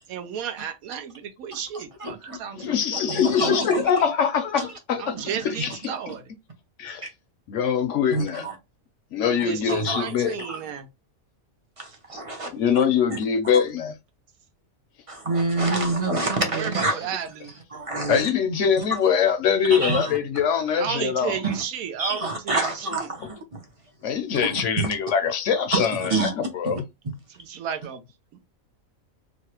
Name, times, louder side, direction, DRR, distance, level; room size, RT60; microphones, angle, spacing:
voice 1, 0.1-3.9 5.0-6.2 9.3-10.9 16.4-17.5 20.8-22.9 27.4-28.0 28.3-28.4, right 8 dB, 90° right, 1.1 m, -33 dB
voice 2, 1.7-2.4 3.1-4.1 4.6-4.7 5.6-5.7 8.1-8.6 9.7-10.6 11.8-12.5 12.8-12.9 13.1-13.2 13.5-13.6 15.1-17.2 17.7-18.3 18.8-19.0 19.7-20.2 21.4-21.6 22.0-23.6 24.4-24.9 25.7-26.3 26.6-26.8, right 2 dB, 40° right, 0.5 m, -27 dB
voice 3, 2.5-5.1 5.4-5.7 6.8-7.1 7.5-8.4 9.1-10.4 12.5-13.9 18.1-21.4 24.0-26.8, left 7 dB, 70° left, 0.8 m, -23 dB
3.1 x 2.4 x 2.9 m
omnidirectional pair, 1.4 m